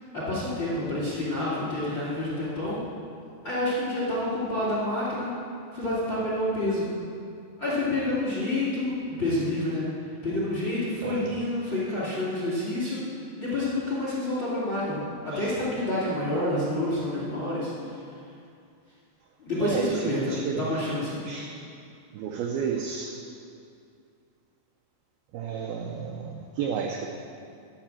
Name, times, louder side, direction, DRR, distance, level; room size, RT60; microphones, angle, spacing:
voice 1, 0.1-2.8 3.4-5.3 5.7-6.9 7.6-9.8 10.2-13.0 13.4-18.0 19.4-21.2, left 1 dB, 35° left, -7 dB, 1.9 m, -28 dB
voice 2, 11.0-11.3 15.3-15.5 19.6-20.7 21.3-21.5 22.1-23.1 25.3-27.1, right 7 dB, 85° right, 2 dB, 2.2 m, -31 dB
12.0 x 5.6 x 7.5 m, 2.4 s
omnidirectional pair, 5.1 m